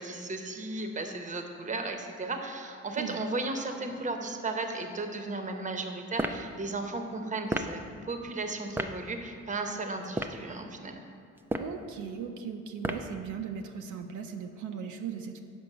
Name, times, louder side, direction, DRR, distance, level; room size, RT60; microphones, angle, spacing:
voice 1, 0.0-11.0, right 3 dB, 25° right, 5 dB, 0.8 m, -35 dB
sound 1, 6.1-6.4 7.5-7.7 8.8-8.9 10.0-10.4 11.4-11.8 12.8-13.1, right 1 dB, 10° right, 0.3 m, -31 dB
voice 2, 11.6-15.4, right 7 dB, 80° right, 4 dB, 0.6 m, -38 dB
6.1 x 5.1 x 6.6 m, 2.4 s
cardioid pair, 90°, 30 cm